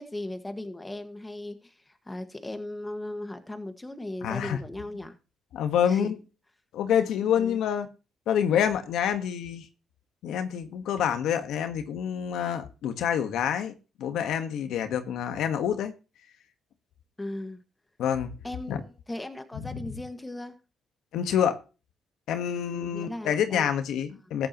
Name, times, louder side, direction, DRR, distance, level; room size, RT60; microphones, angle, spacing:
voice 1, 0.0-5.1 5.9-6.1 7.4-7.6 17.2-17.6 18.4-20.6 22.5-23.7, left 1 dB, 15° left, 1.8 m, -37 dB
voice 2, 4.2-4.6 5.5-6.2 6.7-7.9 8.3-9.7 10.2-15.9 18.0-18.3 18.7-18.8 19.5-19.8 21.1-21.6 22.3-24.5, left 9 dB, 80° left, 1.5 m, -27 dB
14.0 x 9.8 x 3.1 m
cardioid pair, 90°, 0 cm